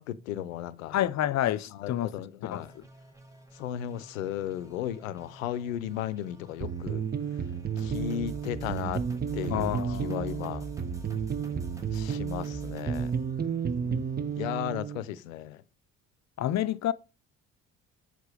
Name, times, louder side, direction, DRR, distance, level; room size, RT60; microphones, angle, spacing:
voice 1, 0.0-1.0 1.7-2.7 3.6-7.0 7.8-9.0 9.3-10.7 11.9-13.2 14.4-15.6, left 11 dB, 80° left, 0.7 m, -35 dB
voice 2, 0.9-2.1 2.5-2.8 9.5-10.4 13.8-14.0 16.4-16.9, left 12 dB, 45° left, 0.6 m, -29 dB
sound 1, 2.5-14.5, right 1 dB, 10° right, 2.6 m, -45 dB
sound 2, 6.6-15.0, right 7 dB, 25° right, 0.9 m, -32 dB
7.8 x 6.8 x 4.9 m
hypercardioid pair, 55°, 39 cm